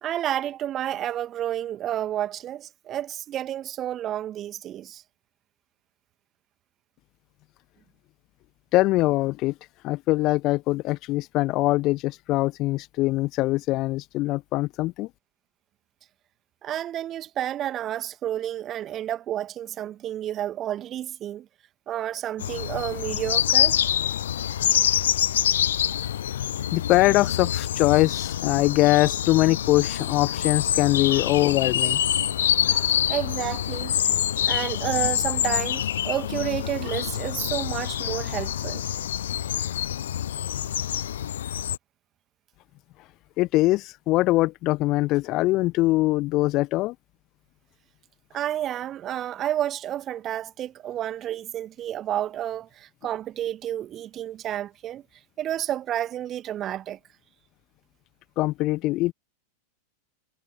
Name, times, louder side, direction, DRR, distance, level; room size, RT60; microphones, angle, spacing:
voice 1, 0.0-5.0 16.6-21.5 21.9-23.8 31.1-31.3 32.6-34.0 34.5-38.8 48.3-55.0 55.4-57.0, right 11 dB, 30° right, 2.1 m, -30 dB
voice 2, 8.7-9.5 9.8-15.1 26.7-32.0 43.4-46.9 58.4-59.1, left 19 dB, 40° left, 1.2 m, -22 dB
sound 1, 22.4-41.8, left 10 dB, 60° left, 0.7 m, -26 dB
figure-of-eight pair, 90°, 0 cm